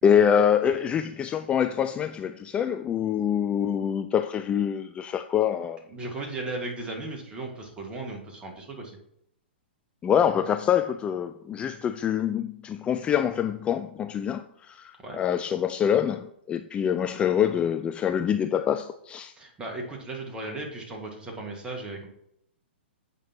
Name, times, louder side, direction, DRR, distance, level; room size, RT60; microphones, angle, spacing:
voice 1, 0.0-5.8 10.0-19.3, left 8 dB, 20° left, 0.3 m, -25 dB
voice 2, 5.9-9.0 15.0-15.2 19.4-22.1, right 2 dB, 15° right, 2.0 m, -36 dB
8.3 x 5.4 x 4.5 m
hypercardioid pair, 120°, 6 cm